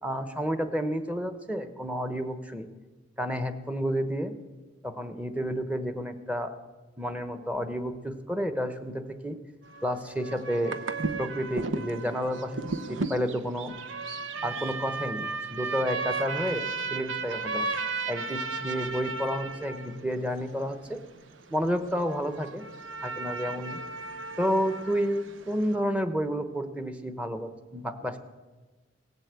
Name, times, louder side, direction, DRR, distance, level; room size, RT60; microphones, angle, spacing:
voice 1, 0.0-2.7 3.2-4.3 4.8-6.5 7.0-9.4 9.8-10.8 11.2-12.6 12.9-13.7 14.4-17.7 18.1-21.0 21.5-22.6 23.0-23.8 24.4-28.2, equal, 5° right, 9 dB, 1.0 m, -30 dB
sound 1, 9.7-25.8, right 3 dB, 90° right, 1.0 m, -35 dB
18.0 x 8.1 x 8.2 m, 1.3 s
head